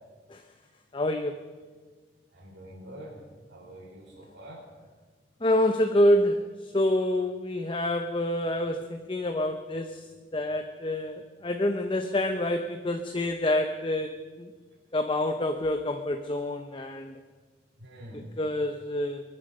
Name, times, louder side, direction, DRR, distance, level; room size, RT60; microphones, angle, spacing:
voice 1, 0.9-1.4 5.4-10.1 10.3-14.5 14.9-17.2 18.4-19.2, left 1 dB, 30° left, 6 dB, 0.7 m, -27 dB
voice 2, 2.3-3.2 3.5-4.6 17.8-18.3, right 1 dB, 85° right, -8 dB, 5.0 m, -45 dB
23.0 x 10.0 x 5.4 m, 1.5 s
head